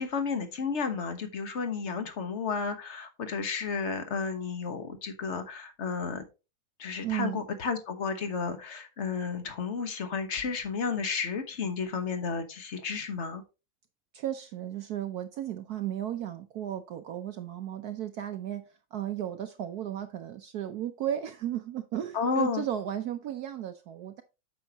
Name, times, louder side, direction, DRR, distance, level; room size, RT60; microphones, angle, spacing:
voice 1, 0.0-6.2 6.8-13.4 22.1-22.6, left 5 dB, 40° left, 1.3 m, -32 dB
voice 2, 7.0-7.4 14.1-18.6 18.9-24.2, right 11 dB, 65° right, 1.0 m, -34 dB
8.7 x 6.4 x 2.9 m
omnidirectional pair, 2.1 m